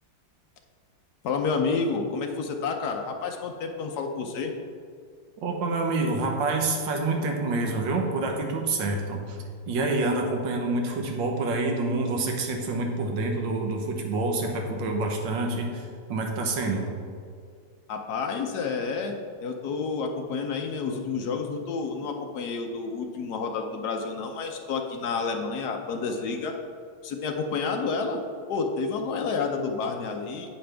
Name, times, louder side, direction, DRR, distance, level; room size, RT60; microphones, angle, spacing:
voice 1, 1.2-4.5 17.9-19.1 19.4-26.5 27.0-28.2 28.5-30.5, left 4 dB, 65° left, 3 dB, 1.0 m, -29 dB
voice 2, 5.4-9.4 9.7-16.8, right 2 dB, 65° right, 2 dB, 1.6 m, -27 dB
8.7 x 8.3 x 3.4 m, 2.2 s
omnidirectional pair, 2.4 m